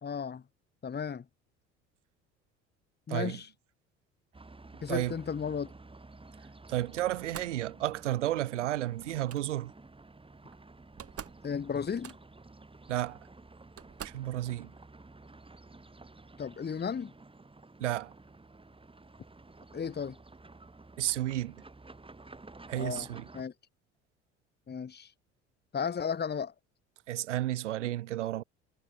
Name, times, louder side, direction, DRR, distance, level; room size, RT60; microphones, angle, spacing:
voice 1, 0.0-0.4 0.8-1.2 3.1-3.5 4.8-5.7 11.4-12.1 16.4-17.1 19.7-20.2 22.8-23.1 23.3-23.5 24.7-25.1 25.7-26.5, left 6 dB, 30° left, 2.1 m, -34 dB
sound 1, 4.3-23.4, right 3 dB, 15° right, 6.4 m, -52 dB
voice 2, 6.7-9.7 12.9-13.2 14.0-14.7 17.8-18.1 21.0-21.6 22.7-23.3 27.1-28.4, right 14 dB, 80° right, 1.0 m, -32 dB
Slam, 7.0-7.6 9.0-9.4 10.5-10.6 10.8-11.5 11.7-12.4 13.2-13.3 13.8-14.3, right 9 dB, 40° right, 4.1 m, -46 dB
figure-of-eight pair, 60°, 36 cm